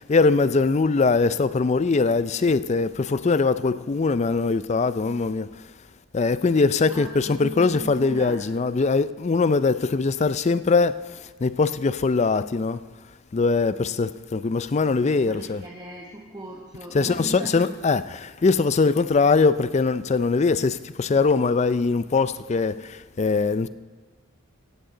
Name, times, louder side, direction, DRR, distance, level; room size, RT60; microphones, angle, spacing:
voice 1, 0.0-5.5 6.1-11.0 11.4-12.8 13.3-15.6 16.9-22.7 23.2-23.7, left 4 dB, 30° left, 0.4 m, -21 dB
voice 2, 6.9-8.5 15.1-17.8, right 1 dB, 20° right, 1.1 m, -38 dB
16.0 x 6.5 x 7.8 m
head